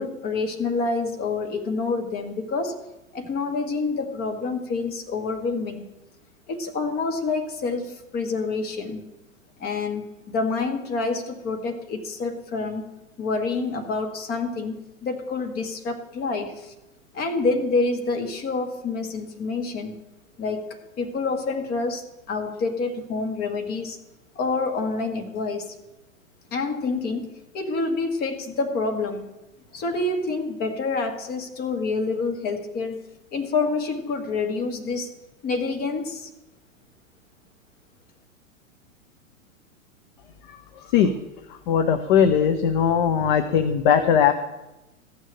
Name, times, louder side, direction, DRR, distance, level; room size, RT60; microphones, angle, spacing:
voice 1, 0.0-2.8 3.1-5.9 6.5-9.0 9.6-12.8 13.2-16.7 17.1-20.0 20.4-20.7 21.0-24.0 24.4-25.8 26.5-29.3 29.7-33.0 33.3-35.1 35.4-36.3, left 3 dB, 20° left, 5 dB, 1.7 m, -27 dB
voice 2, 41.7-44.3, left 8 dB, 35° left, 9 dB, 0.9 m, -19 dB
14.5 x 6.4 x 9.0 m, 0.98 s
figure-of-eight pair, 105°, 41 cm